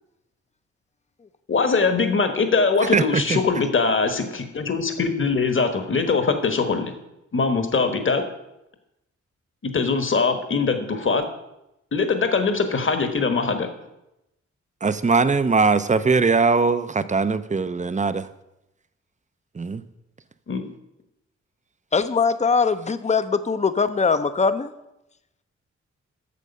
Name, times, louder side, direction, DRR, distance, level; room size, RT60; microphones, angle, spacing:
voice 1, 1.5-6.9 7.3-8.2 9.6-11.2 11.9-13.7 20.5-20.7, left 4 dB, 45° left, 7 dB, 1.3 m, -22 dB
voice 2, 2.9-3.4 14.8-18.3 19.5-19.8, right 4 dB, 25° right, 13 dB, 0.6 m, -21 dB
voice 3, 21.9-24.7, left 5 dB, 25° left, 12 dB, 0.6 m, -21 dB
8.5 x 6.6 x 5.4 m, 0.89 s
cardioid pair, 50°, 29 cm